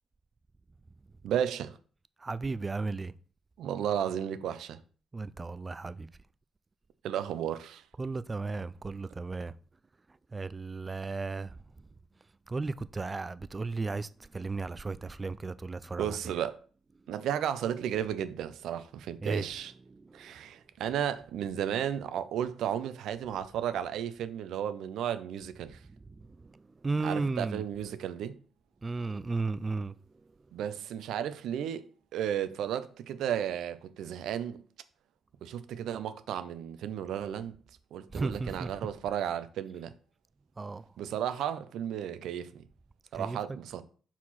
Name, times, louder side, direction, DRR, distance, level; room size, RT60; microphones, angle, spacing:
voice 1, 1.2-1.8 3.6-4.8 7.0-7.8 16.0-16.6 17.1-19.7 20.1-25.8 27.0-28.4 30.5-31.9 32.1-34.6 35.4-37.6 37.9-39.9 41.0-42.7 43.1-43.8, right 9 dB, 80° right, 0.6 m, -33 dB
voice 2, 2.2-3.1 5.1-6.1 8.0-9.5 10.3-11.5 12.5-14.1 14.3-16.2 19.2-19.5 19.9-20.0 26.8-27.6 28.8-29.9 38.1-38.7 40.6-40.8 43.1-43.6, right 3 dB, 25° right, 0.4 m, -34 dB
4.7 x 4.3 x 5.7 m
cardioid pair, 90°, 0 cm